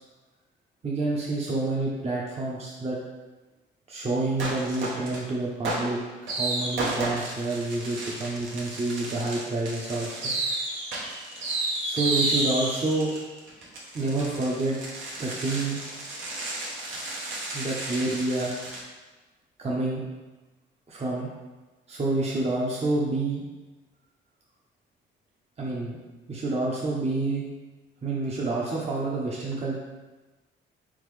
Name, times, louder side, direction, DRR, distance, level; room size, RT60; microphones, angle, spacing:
voice 1, 0.8-3.0 3.9-6.0 6.3-10.3 11.8-13.1 13.9-14.8 15.2-15.8 17.5-18.5 19.6-20.0 20.9-21.3 21.9-23.4 25.6-26.0 26.3-27.4 28.0-29.8, right 2 dB, 30° right, -4 dB, 0.7 m, -28 dB
sound 1, 4.4-5.2 5.6-18.8, right 2 dB, 75° right, 1.0 m, -32 dB
4.0 x 3.7 x 3.2 m, 1.2 s
cardioid pair, 90°, 20 cm